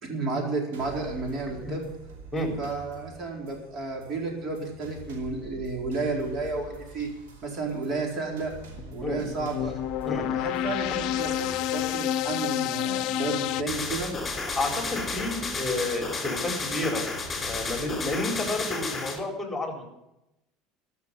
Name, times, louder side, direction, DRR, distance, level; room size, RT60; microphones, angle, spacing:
voice 1, 0.0-1.9 2.6-7.1 7.4-8.5 8.9-9.7 10.3-14.1, right 3 dB, 45° right, 1 dB, 4.2 m, -32 dB
sound 1, 0.7-18.2, right 4 dB, 85° right, 2.8 m, -46 dB
sound 2, 8.8-13.6, left 13 dB, 60° left, 0.6 m, -29 dB
voice 2, 10.0-10.3 14.6-17.0 17.4-19.9, left 2 dB, 5° left, 2 dB, 4.1 m, -30 dB
sound 3, 13.7-19.2, left 4 dB, 25° left, 3.2 m, -32 dB
13.0 x 6.4 x 9.8 m, 0.91 s
supercardioid pair, 90°, 0 cm